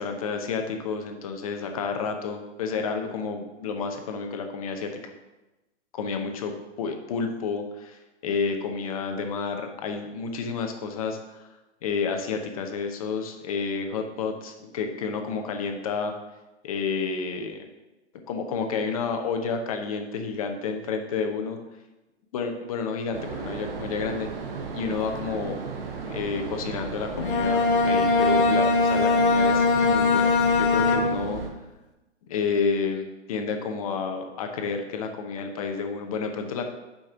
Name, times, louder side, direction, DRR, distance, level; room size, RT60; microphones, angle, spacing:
voice 1, 0.0-5.1 5.9-6.5 6.8-11.5 11.8-16.1 16.6-17.6 18.3-21.6 22.3-24.3 24.7-25.6 26.1-31.4 32.3-36.7, left 5 dB, 30° left, 5 dB, 0.7 m, -30 dB
sound 1, 23.1-31.5, right 5 dB, 55° right, 1.3 m, -35 dB
Bowed string instrument, 27.2-31.4, left 3 dB, 50° left, 1.2 m, -21 dB
6.1 x 5.2 x 6.0 m, 1.0 s
hypercardioid pair, 165°, 35 cm